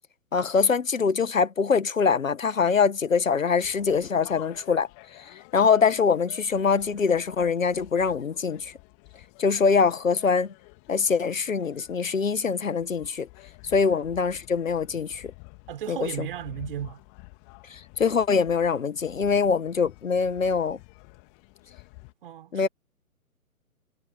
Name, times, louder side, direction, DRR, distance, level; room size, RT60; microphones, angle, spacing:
voice 1, 0.3-4.9 5.5-8.7 9.4-10.5 10.9-13.3 13.7-15.2 15.9-16.1 18.0-20.8 22.5-22.7, left 5 dB, 55° left, 1.7 m, -23 dB
sound 1, 3.6-22.1, left 39 dB, 20° left, 2.5 m, -50 dB
voice 2, 15.7-17.0 22.2-22.7, right 11 dB, 35° right, 5.0 m, -35 dB
figure-of-eight pair, 135°, 46 cm